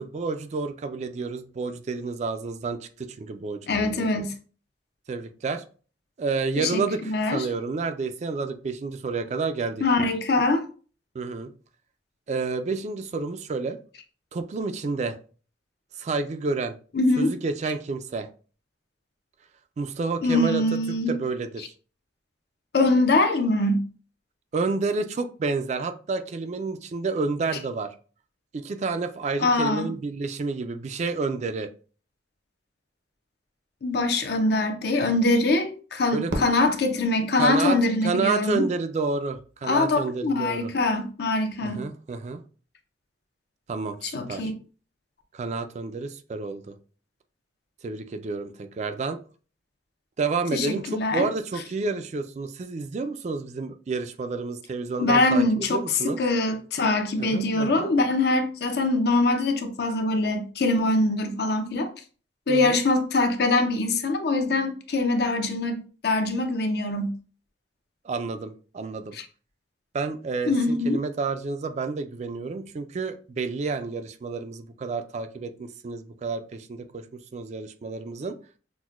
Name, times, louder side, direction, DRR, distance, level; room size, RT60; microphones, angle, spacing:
voice 1, 0.0-4.3 5.1-5.6 6.2-9.8 11.1-11.5 12.3-13.8 14.3-15.2 16.0-16.7 17.2-18.3 19.8-20.6 21.1-21.7 24.5-27.9 28.5-31.7 36.1-36.5 37.4-40.7 41.6-42.4 43.7-44.5 45.3-46.8 47.8-49.2 50.2-55.4 55.7-56.2 57.2-57.9 62.5-62.8 68.0-69.2 69.9-78.4, right 4 dB, 40° right, 0.3 m, -30 dB
voice 2, 3.7-4.3 6.6-7.4 9.8-10.6 16.9-17.3 20.2-21.2 22.7-23.8 29.4-29.9 33.8-38.6 39.6-41.8 44.0-44.5 50.5-51.2 55.0-61.9 62.5-67.1 69.1-69.2 70.5-71.0, left 2 dB, 60° left, 0.6 m, -23 dB
Fireworks, 36.3-38.5, right 1 dB, 75° right, 0.8 m, -36 dB
5.9 x 2.1 x 2.4 m
head